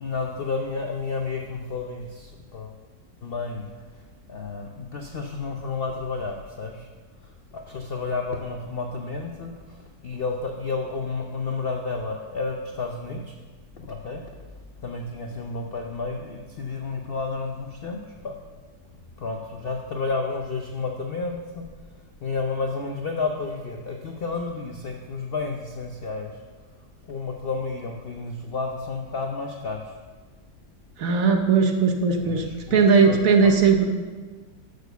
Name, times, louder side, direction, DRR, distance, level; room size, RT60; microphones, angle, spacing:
voice 1, 0.0-2.7 3.2-3.7 4.3-6.9 7.2-13.4 13.8-14.2 14.8-18.3 19.2-21.7 22.2-26.4 27.1-29.9 32.2-33.5, left 4 dB, 60° left, 2 dB, 0.6 m, -31 dB
voice 2, 31.0-32.4 32.7-33.9, right 5 dB, 60° right, 4 dB, 1.1 m, -18 dB
6.6 x 6.5 x 6.7 m, 1.4 s
omnidirectional pair, 1.8 m